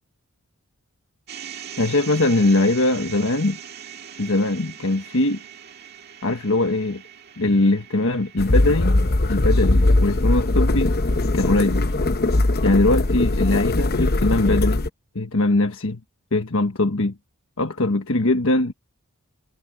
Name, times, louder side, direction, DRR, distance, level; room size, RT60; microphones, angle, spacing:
sound 1, 1.3-13.4, right 9 dB, 50° right, 1.9 m, -42 dB
voice 1, 1.8-3.6 4.2-5.4 6.2-7.0 7.4-9.0 9.3-11.0 11.3-11.9 12.6-14.8 15.1-16.0 16.3-17.1 17.6-18.7, left 2 dB, 65° left, 1.4 m, -21 dB
sound 2, 8.4-14.9, left 2 dB, 45° left, 0.9 m, -20 dB
head